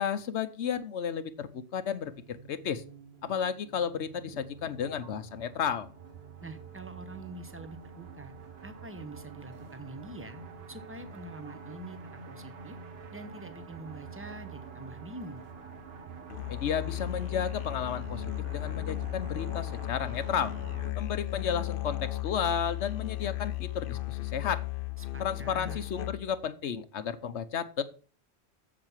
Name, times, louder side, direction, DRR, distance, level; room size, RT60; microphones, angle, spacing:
voice 1, 0.0-2.8 3.2-5.9 16.5-18.2 18.5-20.5 21.0-24.6 25.2-27.8, left 7 dB, 90° left, 12 dB, 1.1 m, -33 dB
sound 1, 1.9-20.9, right 5 dB, 65° right, 1.4 m, -47 dB
voice 2, 6.4-8.3 8.6-10.4 10.7-12.8 13.1-15.4 25.0-25.8, right 2 dB, 10° right, 10 dB, 1.0 m, -45 dB
Musical instrument, 16.3-26.4, left 16 dB, 60° left, 0.8 m, -35 dB
7.6 x 7.5 x 7.3 m, 0.39 s
omnidirectional pair, 1.1 m